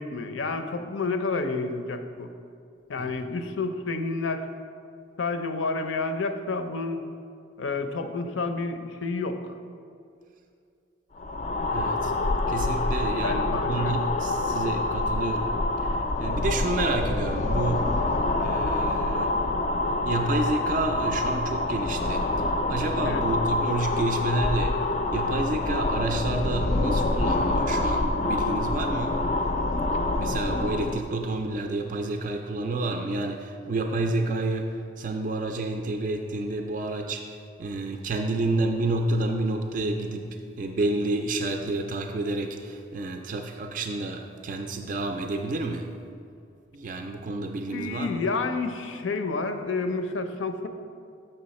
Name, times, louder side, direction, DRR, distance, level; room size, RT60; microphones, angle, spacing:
voice 1, 0.0-2.3 2.9-4.5 5.2-7.0 7.6-9.5 13.2-14.0 23.0-23.2 47.7-50.7, left 3 dB, 85° left, 8 dB, 0.5 m, -30 dB
sound 1, 11.2-31.0, left 2 dB, 40° left, 0.4 m, -26 dB
voice 2, 11.7-12.1 12.5-15.5 15.8-17.8 18.4-19.4 20.0-24.8 25.1-29.2 30.2-45.9 46.7-48.2, right 2 dB, 45° right, 4 dB, 0.3 m, -29 dB
6.8 x 5.6 x 4.1 m, 2.4 s
head